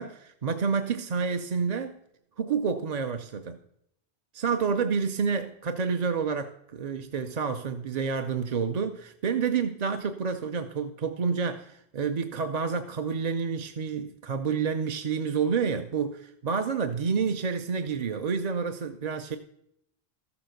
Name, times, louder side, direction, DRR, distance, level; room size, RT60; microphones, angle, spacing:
voice 1, 0.0-2.0 2.4-3.6 4.3-19.4, right 5 dB, 45° right, 7 dB, 0.6 m, -29 dB
13.5 x 7.0 x 6.5 m, 0.75 s
omnidirectional pair, 1.0 m